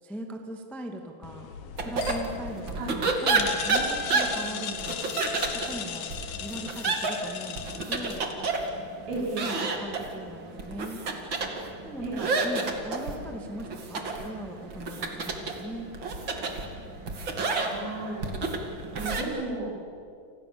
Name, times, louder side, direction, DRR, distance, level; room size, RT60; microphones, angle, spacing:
voice 1, 0.0-1.5 1.8-5.3 5.5-6.1 6.4-8.3 9.4-11.0 11.8-15.9, right 1 dB, ahead, 3 dB, 0.6 m, -40 dB
sound 1, 1.2-8.7, left 9 dB, 65° left, 2.9 m, -38 dB
sound 2, 1.8-19.2, right 3 dB, 35° right, 2.1 m, -31 dB
voice 2, 9.1-9.5 12.0-12.3 17.6-18.3 19.0-19.8, right 3 dB, 85° right, -2 dB, 7.5 m, -33 dB
30.0 x 27.5 x 7.1 m, 2.4 s
omnidirectional pair, 5.1 m